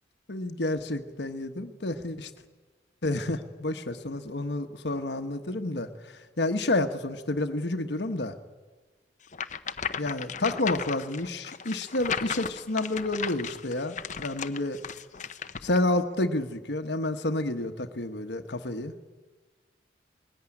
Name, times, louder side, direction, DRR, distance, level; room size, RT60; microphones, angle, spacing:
voice 1, 0.3-2.3 3.0-8.4 10.0-14.8 15.6-18.9, left 2 dB, 70° left, 7 dB, 1.2 m, -30 dB
sound 1, 9.3-15.8, left 6 dB, 40° left, 0.8 m, -35 dB
21.0 x 17.0 x 9.9 m, 1.3 s
head